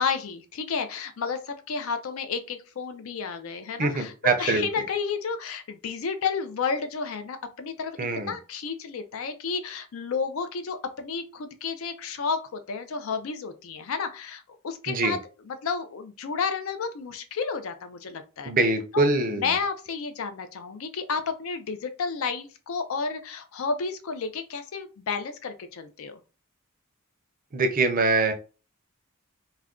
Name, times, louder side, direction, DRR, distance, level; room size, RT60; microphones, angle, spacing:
voice 1, 0.0-4.1 4.4-15.2 15.5-18.5 18.9-26.2, left 5 dB, 70° left, 8 dB, 0.4 m, -31 dB
voice 2, 3.8-4.7 8.0-8.3 14.9-15.2 18.4-19.5 27.5-28.3, right 3 dB, 40° right, 7 dB, 0.5 m, -24 dB
2.3 x 2.2 x 3.5 m, 0.34 s
head